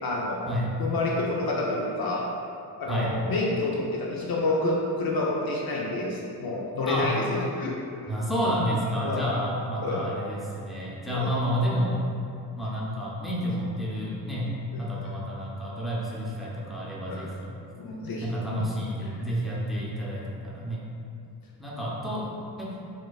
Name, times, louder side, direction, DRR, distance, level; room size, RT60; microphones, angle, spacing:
voice 1, 0.0-0.4 0.8-2.2 2.8-7.7 9.0-9.2 9.8-10.0 11.1-11.3 14.7-14.8 17.1-17.2 17.7-18.6, left 2 dB, 50° left, -3 dB, 0.6 m, -28 dB
voice 2, 8.1-12.0 12.6-14.5 14.8-17.5 18.2-20.8 21.6-22.3 22.6-22.7, equal, ahead, -6 dB, 0.8 m, -30 dB
4.5 x 2.1 x 2.3 m, 2.5 s
supercardioid pair, 55°, 46 cm